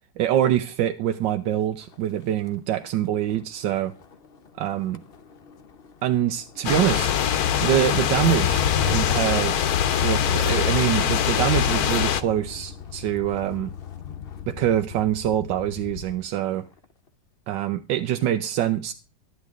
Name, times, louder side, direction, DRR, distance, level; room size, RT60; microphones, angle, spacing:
voice 1, 0.2-3.9 4.6-5.0 6.0-7.1 7.6-9.7 10.0-13.7 14.5-16.7 17.5-18.9, right 11 dB, 90° right, 1.4 m, -25 dB
Motor vehicle (road), 1.1-1.5 1.8-16.3 16.6-17.1, left 7 dB, 45° left, 0.9 m, -37 dB
sound 1, 6.6-12.2, left 9 dB, 65° left, 1.2 m, -23 dB
12.5 x 9.8 x 3.6 m
omnidirectional pair, 1.9 m